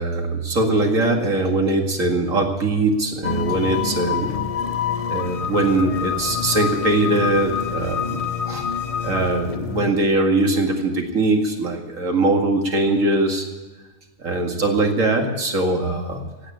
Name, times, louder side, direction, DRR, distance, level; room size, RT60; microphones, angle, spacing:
voice 1, 0.0-4.4 5.1-8.2 8.4-8.7 9.0-13.5 14.2-16.2, right 2 dB, 75° right, 2 dB, 2.6 m, -21 dB
sound 1, 3.2-9.9, left 7 dB, 35° left, 0.7 m, -26 dB
16.5 x 9.2 x 8.7 m, 1.2 s
omnidirectional pair, 1.4 m